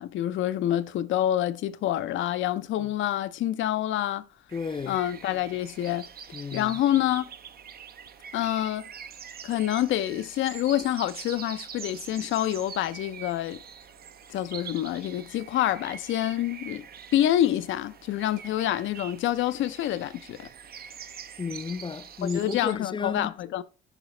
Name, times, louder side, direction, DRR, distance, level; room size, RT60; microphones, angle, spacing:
voice 1, 0.0-4.3 4.9-6.1 6.5-7.3 8.3-8.9 9.4-13.6 14.3-16.8 17.1-20.5 22.3-23.6, left 12 dB, 75° left, 0.6 m, -27 dB
voice 2, 4.5-5.0 6.3-6.8 21.4-23.3, left 5 dB, 25° left, 0.4 m, -33 dB
sound 1, 4.5-22.7, right 7 dB, 50° right, 0.7 m, -44 dB
9.8 x 5.1 x 3.2 m
cardioid pair, 90°, 20 cm